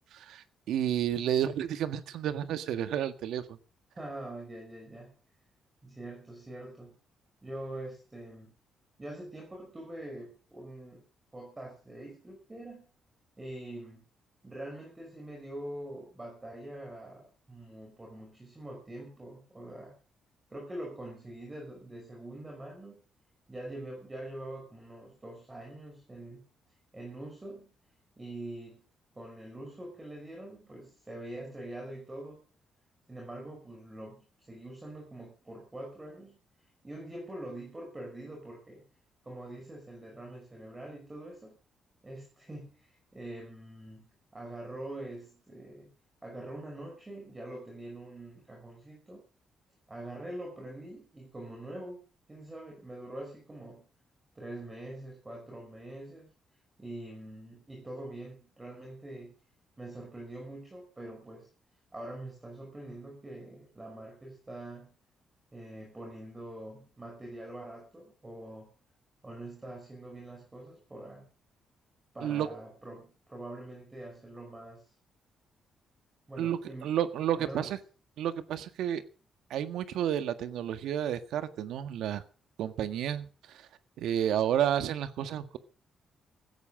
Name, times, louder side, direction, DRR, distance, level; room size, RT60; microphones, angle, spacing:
voice 1, 0.1-3.4 72.2-72.5 76.4-77.8 78.2-79.0 79.5-82.2 82.6-83.7 84.0-85.6, right 10 dB, 85° right, 11 dB, 1.7 m, -31 dB
voice 2, 3.9-5.1 5.8-6.9 7.4-8.6 9.0-11.0 11.3-12.9 13.4-14.1 14.4-19.9 20.5-23.0 23.5-26.4 26.9-27.7 28.2-28.8 29.1-32.4 33.1-38.8 39.2-41.6 42.0-45.9 46.2-49.2 49.9-52.0 52.3-53.9 54.3-56.3 56.8-59.3 59.8-61.5 61.9-64.9 65.5-68.7 69.2-71.3 72.1-74.9 76.3-77.0 77.4-77.7, right 1 dB, 15° right, 1 dB, 5.7 m, -44 dB
16.5 x 14.5 x 5.1 m, 0.37 s
cardioid pair, 165°, 0 cm